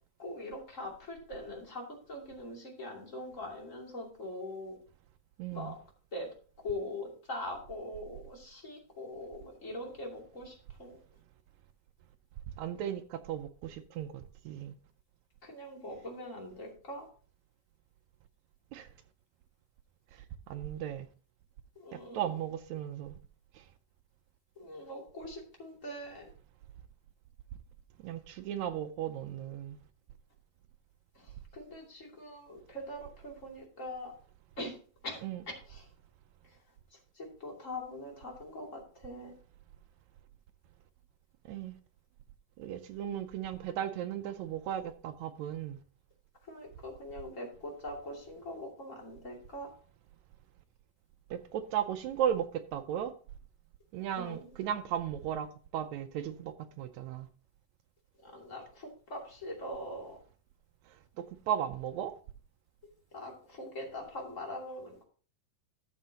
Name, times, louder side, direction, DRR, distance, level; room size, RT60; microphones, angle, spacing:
voice 1, 0.2-4.8 5.5-5.8 6.1-6.3 6.6-11.0 15.4-17.1 21.7-22.3 24.6-26.3 31.1-34.1 34.6-34.7 35.0-35.9 36.4-36.6 36.9-39.3 46.4-49.7 54.2-54.5 58.2-60.2 63.1-65.0, left 1 dB, 25° left, 2.7 m, -42 dB
voice 2, 5.4-5.8 12.6-14.7 18.7-18.9 20.1-21.1 21.9-23.2 23.5-23.7 28.0-29.8 35.2-35.4 41.5-41.8 42.6-45.8 51.3-53.1 53.9-57.3 60.9-62.1, right 10 dB, 80° right, 1.6 m, -36 dB
13.0 x 7.3 x 2.8 m
omnidirectional pair, 4.0 m